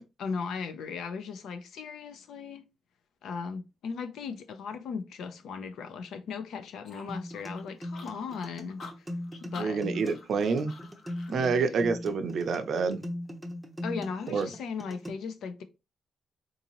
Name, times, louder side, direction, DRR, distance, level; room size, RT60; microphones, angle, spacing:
voice 1, 0.2-2.7 3.2-9.1 9.4-9.8 11.3-11.5 13.8-15.6, left 5 dB, 80° left, 0.6 m, -37 dB
sound 1, 6.8-11.4, left 4 dB, 55° left, 0.9 m, -49 dB
sound 2, 7.1-15.1, left 1 dB, ahead, 0.6 m, -39 dB
voice 2, 9.6-10.8 11.3-13.0 14.3-14.5, right 5 dB, 55° right, 0.5 m, -27 dB
3.8 x 2.7 x 2.9 m
cardioid pair, 150°, 0 cm